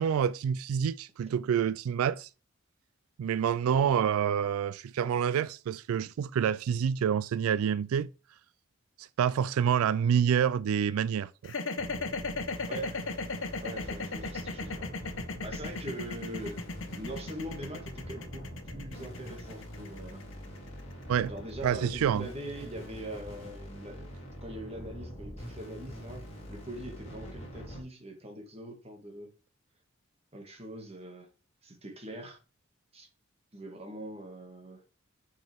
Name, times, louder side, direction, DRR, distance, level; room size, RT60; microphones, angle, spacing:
voice 1, 0.0-2.3 3.2-8.1 9.0-11.5 21.1-21.3 21.6-22.3, right 8 dB, 90° right, 0.3 m, -27 dB
sound 1, 11.4-21.6, left 3 dB, 65° left, 1.1 m, -36 dB
sound 2, 11.8-27.8, equal, 30° left, 2.8 m, -44 dB
voice 2, 12.7-13.0 13.6-16.6 16.9-20.2 21.3-24.1 24.4-29.3 30.3-31.3 31.6-32.4 32.9-33.1 33.5-34.8, right 1 dB, 30° right, 1.9 m, -42 dB
7.6 x 5.7 x 3.5 m
head